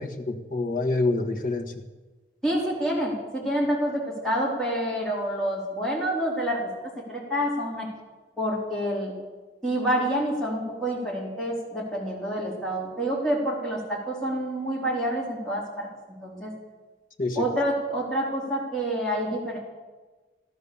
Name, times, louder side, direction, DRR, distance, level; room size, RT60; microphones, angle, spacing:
voice 1, 0.0-1.7 17.2-17.5, left 2 dB, 50° left, 2 dB, 1.7 m, -27 dB
voice 2, 2.4-6.7 7.1-7.9 8.4-9.1 9.6-16.5 17.3-19.6, right 1 dB, 5° left, -5 dB, 4.0 m, -28 dB
16.5 x 12.0 x 7.1 m, 1.3 s
head